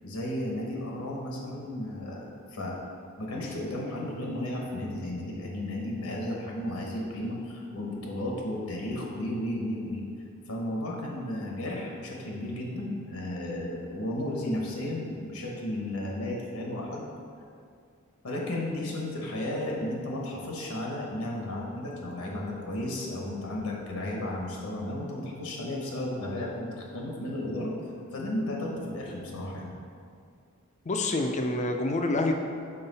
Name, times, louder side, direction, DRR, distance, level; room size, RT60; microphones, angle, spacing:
voice 1, 0.0-2.8 3.2-10.0 10.5-17.1 18.2-27.7 28.1-29.7, left 1 dB, 80° left, -1 dB, 1.0 m, -34 dB
voice 2, 30.8-32.3, left 2 dB, 35° left, 4 dB, 0.5 m, -27 dB
5.6 x 4.7 x 4.1 m, 2.4 s
head